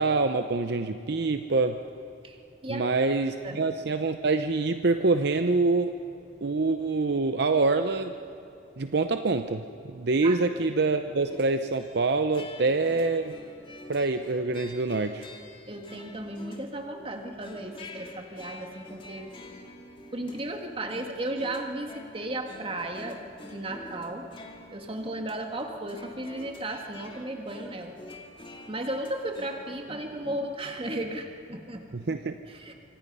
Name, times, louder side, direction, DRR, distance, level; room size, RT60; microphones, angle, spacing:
voice 1, 0.0-1.8 2.7-5.9 6.4-8.1 8.8-13.3 13.9-15.3 31.9-32.4, right 3 dB, 60° right, 8 dB, 0.7 m, -25 dB
voice 2, 2.2-2.8 3.4-3.6 10.2-10.4 15.7-19.3 20.1-24.3 24.7-28.0 28.7-32.0 32.5-32.7, right 1 dB, 30° right, 3 dB, 1.9 m, -35 dB
sound 1, 11.2-12.0 12.3-16.9 17.1-30.0, left 2 dB, 30° left, 2.1 m, -48 dB
26.0 x 25.0 x 5.5 m, 2.7 s
head